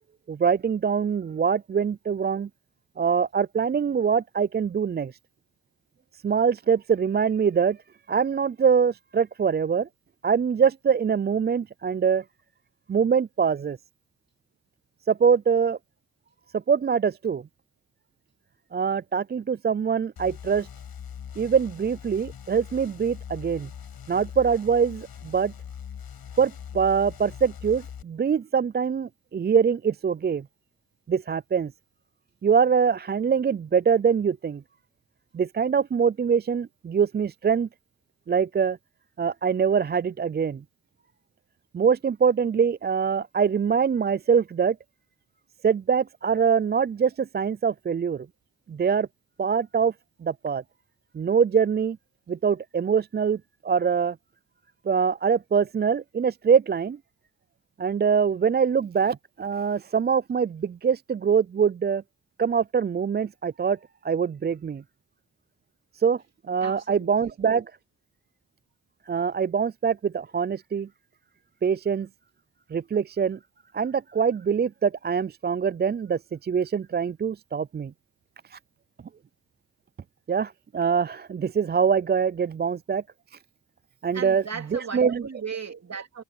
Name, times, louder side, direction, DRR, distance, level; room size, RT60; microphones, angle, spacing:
voice 1, 0.3-2.5 3.0-5.1 6.2-7.8 8.1-9.9 10.2-12.2 12.9-13.8 15.1-15.8 16.5-17.4 18.7-20.7 21.4-23.7 24.1-25.5 26.4-30.5 31.1-31.7 32.4-34.6 35.3-37.7 38.3-38.8 39.2-40.6 41.7-44.8 45.6-48.3 48.7-49.1 49.4-49.9 50.2-50.6 51.1-52.0 52.3-54.2 54.9-57.0 57.8-62.0 62.4-63.8 64.0-64.8 66.0-66.2 66.5-67.7 69.1-70.9 71.6-72.1 72.7-73.4 73.7-77.9 78.5-78.6 80.3-83.0 84.0-84.4 84.7-85.2, right 6 dB, 25° right, 0.4 m, -24 dB
sound 1, 20.2-28.0, left 8 dB, 65° left, 6.9 m, -42 dB
voice 2, 66.6-67.1 84.1-86.2, right 6 dB, 40° right, 3.1 m, -36 dB
supercardioid pair, 45°, 39 cm